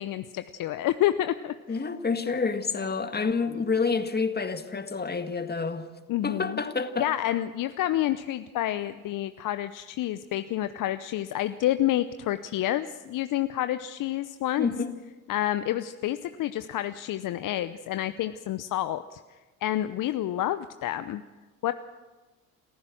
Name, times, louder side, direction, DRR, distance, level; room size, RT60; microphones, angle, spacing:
voice 1, 0.0-1.8 6.1-6.6 7.0-14.7 15.3-19.2 19.6-21.2 21.6-21.7, left 13 dB, 50° left, 11 dB, 0.8 m, -29 dB
voice 2, 1.7-5.9 6.2-7.1 14.6-14.9, left 4 dB, 20° left, 8 dB, 1.8 m, -28 dB
28.0 x 15.0 x 6.3 m, 1.3 s
hypercardioid pair, 60°, 42 cm